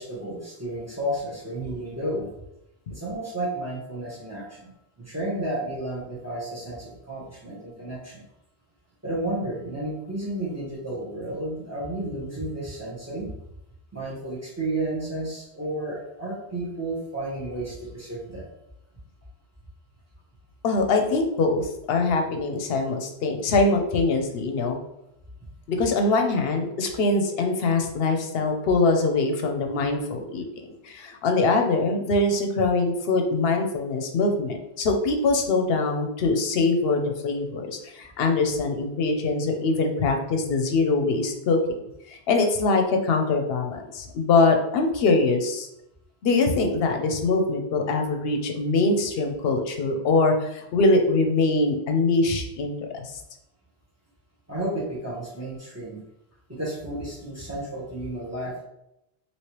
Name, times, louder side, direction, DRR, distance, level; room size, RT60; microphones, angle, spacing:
voice 1, 0.0-2.3 2.9-4.7 5.0-8.2 9.0-13.3 13.9-18.5 54.5-56.0 56.5-58.6, right 1 dB, 15° right, -6 dB, 0.9 m, -32 dB
voice 2, 20.6-24.8 25.7-41.6 42.1-45.7 46.2-53.2, left 3 dB, 70° left, 4 dB, 0.8 m, -23 dB
3.1 x 2.8 x 2.9 m, 0.85 s
omnidirectional pair, 1.1 m